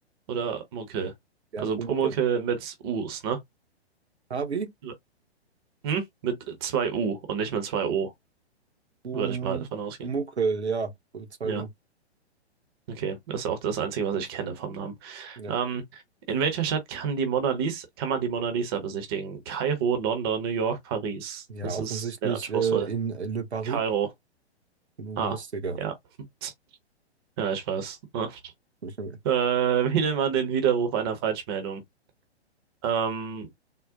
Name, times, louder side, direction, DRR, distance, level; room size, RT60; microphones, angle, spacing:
voice 1, 0.3-1.1 1.6-3.4 4.8-4.9 5.8-8.1 9.1-10.1 11.4-11.6 12.9-16.0 16.3-22.9 23.6-24.1 25.2-25.4 25.8-25.9 26.4-26.5 27.4-28.4 29.2-31.8 32.8-33.5, right 7 dB, 25° right, 0.6 m, -28 dB
voice 2, 1.5-2.1 4.3-4.7 9.0-9.7 10.0-11.7 15.4-15.5 21.5-23.8 25.0-25.8 28.8-29.2, right 5 dB, 75° right, 0.8 m, -30 dB
3.7 x 2.0 x 2.6 m
figure-of-eight pair, 120°, 33 cm